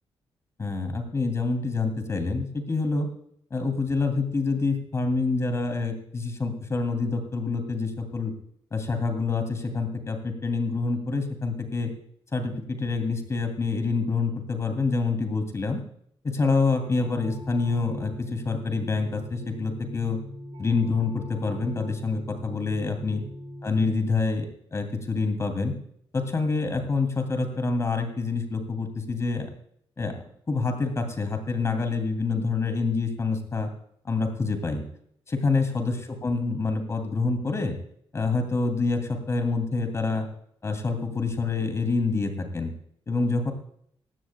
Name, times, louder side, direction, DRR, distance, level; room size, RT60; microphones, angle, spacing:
voice 1, 0.6-3.1 3.5-8.3 8.7-11.9 12.3-15.8 16.2-20.2 20.6-23.2 23.6-25.7 26.1-29.5 30.0-30.2 30.5-33.7 34.0-34.8 35.3-37.7 38.1-40.3 40.6-42.7 43.1-43.5, left 3 dB, 30° left, 6 dB, 2.6 m, -27 dB
sound 1, 16.5-23.9, equal, 80° right, 6.0 m, -40 dB
18.5 x 15.5 x 2.2 m, 0.66 s
wide cardioid pair, 145°, 9 cm